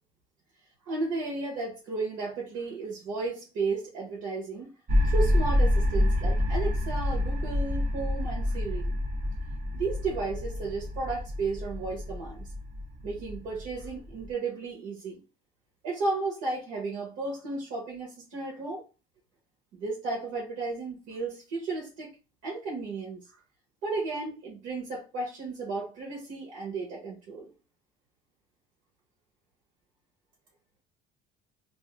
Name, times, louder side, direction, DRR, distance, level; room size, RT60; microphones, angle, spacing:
voice 1, 0.8-4.7 5.0-8.9 9.7-12.5 13.0-15.2 15.8-18.8 19.8-22.2 22.4-23.2 23.8-27.5, right 3 dB, 70° right, 1.0 m, -34 dB
sound 1, 4.9-14.3, left 1 dB, 30° right, 0.5 m, -28 dB
2.6 x 2.0 x 3.1 m
cardioid pair, 175°, 21 cm